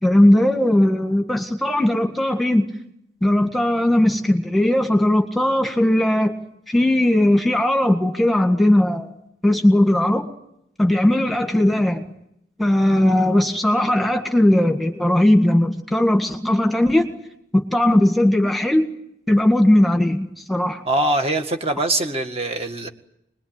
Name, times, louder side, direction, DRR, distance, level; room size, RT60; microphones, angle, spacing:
voice 1, 0.0-2.7 3.2-6.3 6.7-9.1 9.4-10.3 10.8-12.1 12.6-17.1 17.5-18.8 19.3-20.8, left 1 dB, ahead, 4 dB, 1.8 m, -18 dB
voice 2, 20.9-22.9, right 1 dB, 35° right, 5 dB, 1.9 m, -22 dB
26.5 x 21.5 x 9.0 m, 0.77 s
head